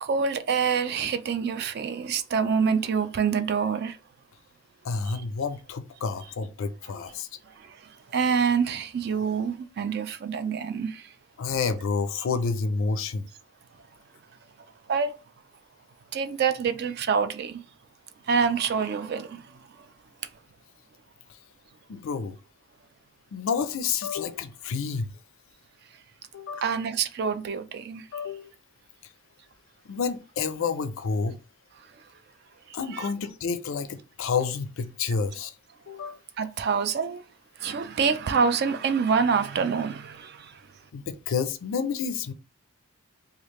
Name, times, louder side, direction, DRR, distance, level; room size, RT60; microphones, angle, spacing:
voice 1, 0.0-4.0 7.6-11.1 14.9-15.1 16.1-17.6 18.3-19.6 26.6-28.1 32.7-33.1 36.4-37.2 37.6-40.6, right 6 dB, 45° right, 0.3 m, -26 dB
voice 2, 4.8-7.3 11.4-13.3 21.9-22.4 23.3-25.1 26.3-26.6 28.1-28.5 29.9-31.4 32.7-35.5 35.9-36.2 40.9-42.3, left 5 dB, 65° left, 0.4 m, -29 dB
3.2 x 2.3 x 3.0 m
head